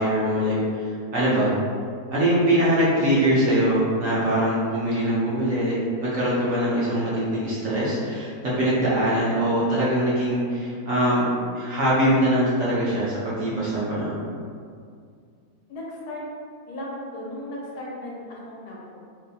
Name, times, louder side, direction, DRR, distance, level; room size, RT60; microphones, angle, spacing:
voice 1, 0.0-1.5 2.1-11.3 11.5-14.2, right 1 dB, 60° right, -9 dB, 1.0 m, -22 dB
voice 2, 15.7-16.2 16.7-19.0, left 1 dB, 70° left, -4 dB, 1.1 m, -36 dB
4.0 x 2.2 x 2.7 m, 2.2 s
omnidirectional pair, 1.8 m